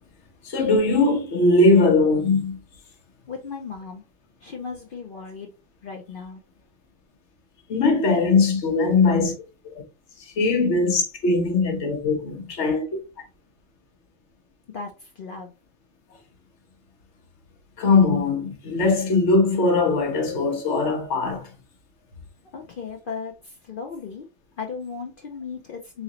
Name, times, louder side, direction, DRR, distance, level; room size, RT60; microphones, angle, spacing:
voice 1, 0.4-2.6 7.7-9.3 10.4-12.8 17.8-21.5, left 3 dB, 80° left, 1.2 m, -20 dB
voice 2, 3.3-4.0 4.4-5.5 5.8-6.4 14.7-15.5 22.5-24.3 24.6-26.0, left 5 dB, 55° left, 0.7 m, -36 dB
3.7 x 3.1 x 2.9 m
omnidirectional pair, 1.2 m